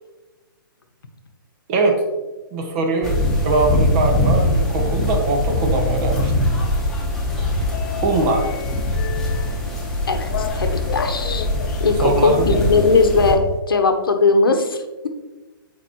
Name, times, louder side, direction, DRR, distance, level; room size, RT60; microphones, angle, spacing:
voice 1, 1.7-2.0 2.5-3.2 3.4-6.3 8.0-8.5 12.0-12.6, right 2 dB, 35° right, 3 dB, 1.3 m, -21 dB
sound 1, 3.0-13.3, left 1 dB, 5° left, 1.4 m, -22 dB
sound 2, 6.6-13.6, left 8 dB, 45° left, 0.6 m, -34 dB
voice 2, 10.1-11.5 11.8-13.4 13.7-15.1, left 4 dB, 85° left, 6 dB, 0.9 m, -19 dB
7.9 x 4.9 x 2.9 m, 1.2 s
hypercardioid pair, 135°, 12 cm